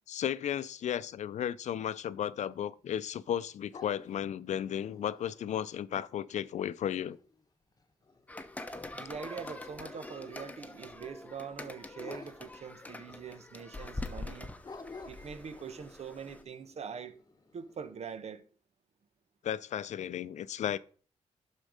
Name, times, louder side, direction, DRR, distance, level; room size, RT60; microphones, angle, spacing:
voice 1, 0.1-7.2 19.4-20.8, left 10 dB, 70° left, 0.5 m, -34 dB
sound 1, 2.3-9.2 9.5-13.1 13.4-13.5 13.9-14.0 14.6-17.9, left 3 dB, 30° left, 1.2 m, -54 dB
sound 2, 8.3-16.4, left 2 dB, 10° left, 1.0 m, -44 dB
voice 2, 8.9-14.5 15.1-17.1 17.5-18.4, right 6 dB, 60° right, 1.2 m, -43 dB
11.5 x 4.6 x 5.1 m
cardioid pair, 80°, 13 cm